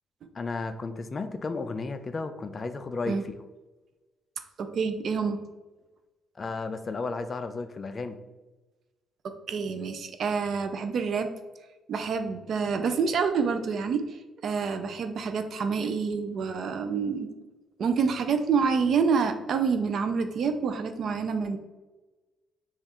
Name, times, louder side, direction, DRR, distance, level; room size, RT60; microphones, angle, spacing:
voice 1, 0.3-3.3 6.4-8.2, left 3 dB, 40° left, 9 dB, 0.3 m, -33 dB
voice 2, 4.6-5.4 9.2-11.3 11.9-14.1 14.4-17.3 17.8-21.6, right 5 dB, 60° right, 8 dB, 0.4 m, -27 dB
5.2 x 2.4 x 2.9 m, 1.2 s
cardioid pair, 90°, 0 cm